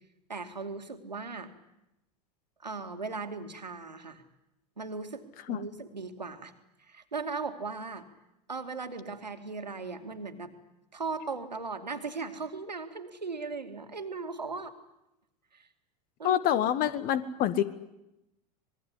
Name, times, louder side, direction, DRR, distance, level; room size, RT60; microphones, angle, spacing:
voice 1, 0.3-1.5 2.6-4.2 4.8-6.5 6.8-8.1 8.5-10.5 10.9-14.7 15.5-15.7 16.2-16.4, right 4 dB, 85° right, 7 dB, 2.4 m, -38 dB
voice 2, 16.2-17.6, left 10 dB, 45° left, 13 dB, 2.0 m, -26 dB
26.0 x 21.0 x 9.9 m, 0.90 s
figure-of-eight pair, 80°, 21 cm